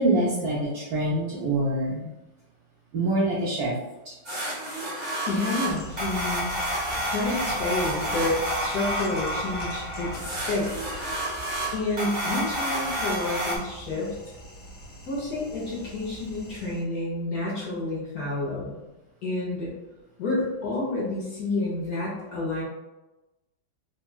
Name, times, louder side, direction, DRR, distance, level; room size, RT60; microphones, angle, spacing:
voice 1, 0.0-2.1 2.9-3.8 4.1-4.2, right 2 dB, 70° right, -5 dB, 0.9 m, -25 dB
sound 1, 4.2-13.6, right 1 dB, 40° right, 0.6 m, -30 dB
voice 2, 5.3-6.5 7.0-10.7 11.7-14.1 15.1-18.8 19.2-19.7 20.2-22.6, left 2 dB, 60° left, -5 dB, 1.0 m, -29 dB
sound 2, 5.7-16.8, equal, 80° left, 1.6 m, -42 dB
3.6 x 2.2 x 2.3 m, 1.0 s
omnidirectional pair, 2.1 m